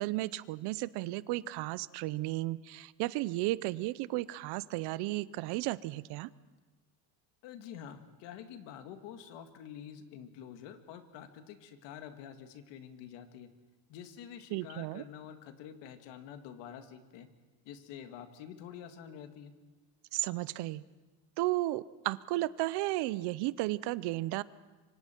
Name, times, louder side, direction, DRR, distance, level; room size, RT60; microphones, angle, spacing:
voice 1, 0.0-6.3 14.5-15.0 20.1-20.8 21.4-24.4, right 18 dB, 60° right, 18 dB, 0.7 m, -34 dB
voice 2, 7.4-13.5 13.9-17.3 17.6-19.6, left 9 dB, 70° left, 8 dB, 1.9 m, -48 dB
26.5 x 24.5 x 4.5 m, 1.2 s
cardioid pair, 140°, 45 cm